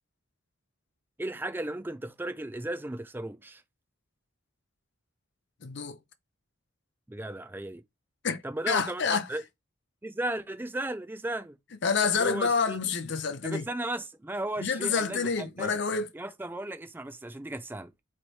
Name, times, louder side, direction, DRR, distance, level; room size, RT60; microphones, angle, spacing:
voice 1, 1.2-3.6 7.1-7.8 8.4-9.4 10.0-11.6 12.2-12.8 13.4-15.8 16.1-17.9, right 1 dB, 10° right, 0.4 m, -35 dB
voice 2, 5.6-6.0 8.2-9.3 11.8-13.7 14.6-16.1, left 5 dB, 55° left, 0.6 m, -28 dB
3.1 x 3.1 x 4.1 m
head